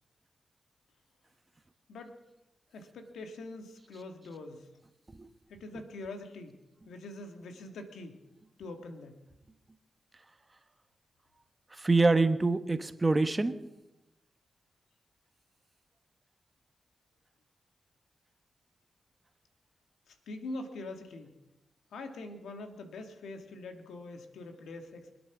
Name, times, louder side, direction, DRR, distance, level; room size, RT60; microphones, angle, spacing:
voice 1, 2.7-4.7 5.5-6.6 6.9-8.2 8.6-9.2 20.1-21.3 21.9-25.2, left 2 dB, 85° left, 5 dB, 1.9 m, -44 dB
voice 2, 11.7-13.6, right 3 dB, 30° right, 10 dB, 1.3 m, -26 dB
24.5 x 8.8 x 6.0 m, 0.97 s
cardioid pair, 50°, 0 cm